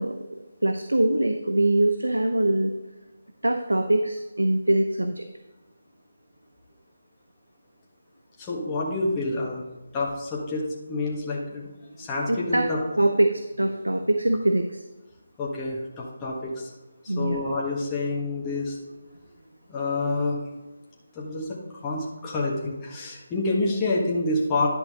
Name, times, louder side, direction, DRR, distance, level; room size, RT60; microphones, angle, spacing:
voice 1, 0.0-2.8 3.4-5.3 12.0-12.7 13.0-14.8 17.1-17.4, right 1 dB, 90° right, 7 dB, 0.6 m, -23 dB
voice 2, 8.4-9.6 9.9-11.7 12.0-12.8 15.4-16.7 17.0-18.8 19.7-20.4 21.1-24.7, left 2 dB, 15° left, -4 dB, 1.5 m, -28 dB
10.5 x 5.8 x 3.7 m, 1.1 s
figure-of-eight pair, 155°, 0 cm